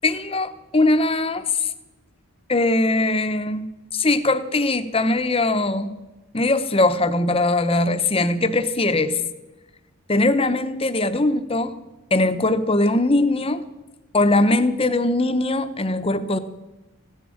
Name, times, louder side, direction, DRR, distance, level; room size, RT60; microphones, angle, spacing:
voice 1, 0.0-1.7 2.5-3.6 3.9-6.0 6.3-9.2 10.1-11.8 12.1-13.6 14.1-16.4, left 2 dB, 25° left, 11 dB, 0.8 m, -21 dB
15.0 x 10.0 x 8.6 m, 1.1 s
head